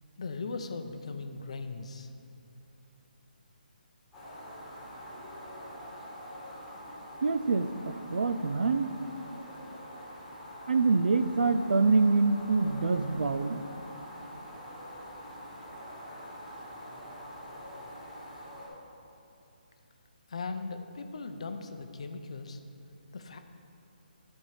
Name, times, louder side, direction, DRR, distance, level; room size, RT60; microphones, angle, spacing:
voice 1, 0.2-2.1 20.3-22.6 23.1-23.4, left 4 dB, 40° left, 7 dB, 0.6 m, -38 dB
sound 1, 4.1-18.7, equal, ahead, 1.5 m, -45 dB
voice 2, 7.2-8.9 10.7-13.6, right 3 dB, 70° right, 11 dB, 0.5 m, -26 dB
12.5 x 4.5 x 4.9 m, 2.9 s
hypercardioid pair, 175°, 5 cm